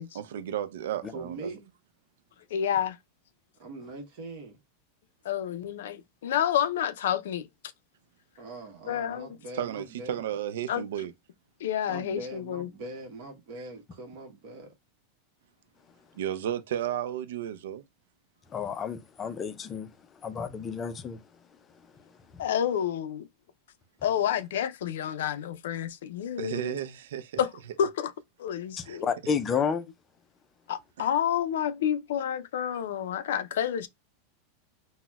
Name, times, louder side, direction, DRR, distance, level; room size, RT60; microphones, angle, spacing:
voice 1, 0.1-1.5 9.5-11.1 16.2-17.8 26.4-27.4 28.8-29.0 31.0-31.1, right 10 dB, 85° right, 0.3 m, -33 dB
voice 2, 1.1-1.7 3.6-4.6 8.4-10.2 11.9-14.7, right 2 dB, 55° right, 0.9 m, -42 dB
voice 3, 2.5-3.0 5.2-7.5 8.9-9.3 10.7-10.8 11.6-12.7 22.4-23.3 24.0-26.8 27.4-27.5 27.8-28.1 28.4-29.1 30.7-33.9, left 9 dB, 85° left, 0.4 m, -29 dB
voice 4, 18.5-19.9 20.2-21.2 22.3-22.4 28.8-29.9, left 6 dB, 20° left, 0.4 m, -31 dB
4.0 x 2.1 x 2.2 m
supercardioid pair, 160°, 0 cm